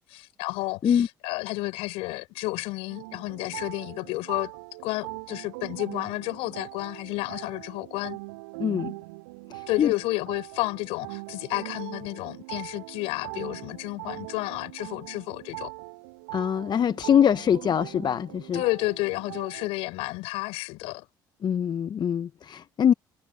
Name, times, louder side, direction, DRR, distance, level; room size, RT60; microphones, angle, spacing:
voice 1, 0.0-4.5 4.8-8.2 9.7-15.7 18.5-21.1, left 22 dB, 70° left, 5.4 m, -31 dB
sound 1, 2.9-19.7, right 26 dB, 75° right, 7.9 m, -41 dB
voice 2, 8.6-8.9 9.5-9.9 16.3-18.6 21.4-22.9, left 8 dB, 45° left, 1.1 m, -23 dB
hypercardioid pair, 55°, 10 cm